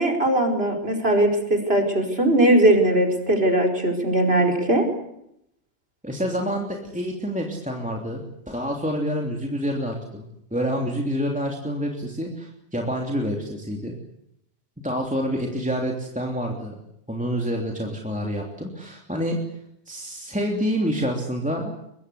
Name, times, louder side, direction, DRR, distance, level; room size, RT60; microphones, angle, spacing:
voice 1, 0.0-4.9, right 1 dB, 60° right, 3 dB, 5.2 m, -20 dB
voice 2, 6.0-8.2 8.5-10.2 10.5-13.9 14.8-16.7 17.1-19.4 19.9-21.7, equal, 5° right, 0 dB, 3.1 m, -27 dB
23.5 x 23.0 x 8.4 m, 0.77 s
omnidirectional pair, 1.1 m